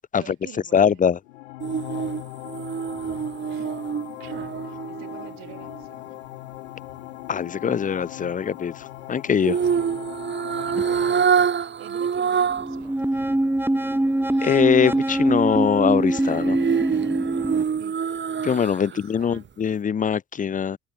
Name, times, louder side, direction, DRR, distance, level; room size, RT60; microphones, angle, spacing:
voice 1, 0.2-1.0 3.5-3.7 4.2-6.2 9.7-9.8 10.6-13.2 17.8-18.0 18.8-19.5, right 22 dB, 70° right, 5.5 m, -46 dB
voice 2, 0.7-1.2 7.3-9.6 14.4-16.6 18.4-20.8, left 7 dB, 25° left, 0.5 m, -22 dB
sound 1, 1.2-11.2, left 18 dB, 85° left, 1.2 m, -39 dB
sound 2, 1.6-5.8 9.4-12.8 13.2-13.3 16.1-19.0 19.3-19.5, right 7 dB, 30° right, 1.3 m, -26 dB
sound 3, 12.5-17.6, right 1 dB, 5° right, 1.9 m, -23 dB
hypercardioid pair, 55°, 35 cm